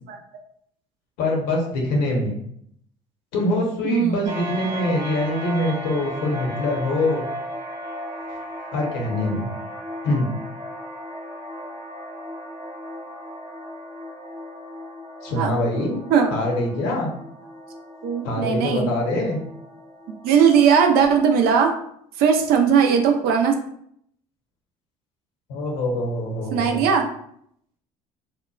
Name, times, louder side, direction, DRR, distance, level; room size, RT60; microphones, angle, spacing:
voice 1, 1.2-2.3 3.3-7.2 8.7-9.5 10.0-10.3 15.2-16.0 16.3-17.1 18.2-19.4 25.5-26.8, left 1 dB, 75° left, -1 dB, 0.9 m, -24 dB
voice 2, 3.8-4.3 15.4-15.5 16.1-16.3 18.0-18.9 20.2-21.7 22.2-23.5 26.5-27.1, right 7 dB, 65° right, 4 dB, 0.5 m, -18 dB
sound 1, 4.3-21.5, equal, 30° right, 0.8 m, -36 dB
2.8 x 2.2 x 2.3 m, 0.69 s
supercardioid pair, 75°, 17 cm